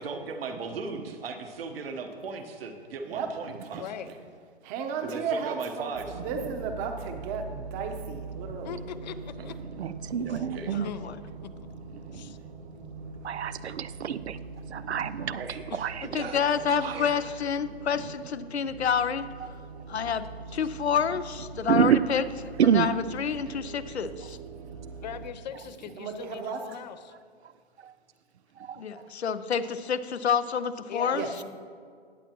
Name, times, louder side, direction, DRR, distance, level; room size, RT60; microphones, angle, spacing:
voice 1, 0.0-4.1 5.0-6.2 10.2-10.7 15.2-15.9 16.2-17.3, right 4 dB, 65° right, 5 dB, 1.2 m, -38 dB
voice 2, 3.7-4.1 8.6-9.6 10.2-10.3 10.7-11.0 12.2-12.3 25.0-27.1 30.9-31.4, left 9 dB, 45° left, 12 dB, 0.5 m, -40 dB
voice 3, 4.6-8.8 26.0-26.6 31.1-31.3, right 5 dB, 25° right, 6 dB, 0.9 m, -34 dB
sound 1, 5.9-25.3, right 4 dB, 40° right, 1.1 m, -42 dB
voice 4, 9.6-10.9 12.1-12.3 13.2-14.4 14.6-16.1 17.9-18.1 19.4-19.5 20.0-20.1 21.1-21.2 21.7-22.2 22.6-23.0 27.4-27.5 27.8-27.9 28.6-29.1, right 8 dB, 90° right, 15 dB, 0.5 m, -28 dB
voice 5, 10.7-11.1 16.1-19.3 19.9-22.2 22.7-22.9 23.2-24.4 28.8-31.3, left 7 dB, 80° left, 12 dB, 0.7 m, -28 dB
18.5 x 7.1 x 2.9 m, 2.1 s
hypercardioid pair, 130°, 32 cm